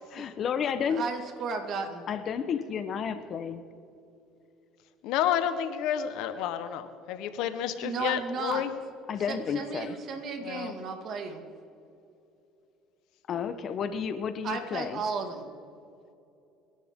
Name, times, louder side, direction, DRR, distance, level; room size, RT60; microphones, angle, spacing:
voice 1, 0.1-1.0 2.1-3.7 9.1-10.0 13.3-15.0, left 7 dB, 45° left, 10 dB, 1.0 m, -31 dB
voice 2, 0.9-2.0 7.8-8.7 9.3-11.4 14.4-15.5, right 4 dB, 50° right, 5 dB, 2.1 m, -34 dB
voice 3, 5.0-8.7 10.4-10.7, left 10 dB, 70° left, 10 dB, 1.1 m, -30 dB
27.0 x 11.0 x 3.7 m, 2.7 s
cardioid pair, 120°, 0 cm